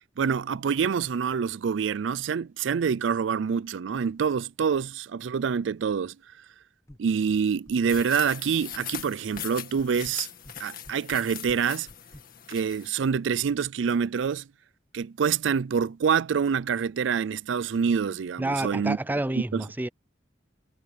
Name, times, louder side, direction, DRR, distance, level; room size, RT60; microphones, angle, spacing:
voice 1, 0.2-6.2 7.0-10.3 10.6-11.9 12.5-14.5 14.9-19.0 19.3-19.6, right 6 dB, 75° right, 0.4 m, -26 dB
sound 1, 6.9-7.4 7.7-8.4 8.7-9.5 9.8-12.3, equal, 15° left, 1.3 m, -49 dB
sound 2, 7.9-12.9, left 10 dB, 50° left, 2.0 m, -40 dB
voice 2, 18.4-19.9, right 1 dB, 10° right, 0.4 m, -29 dB
head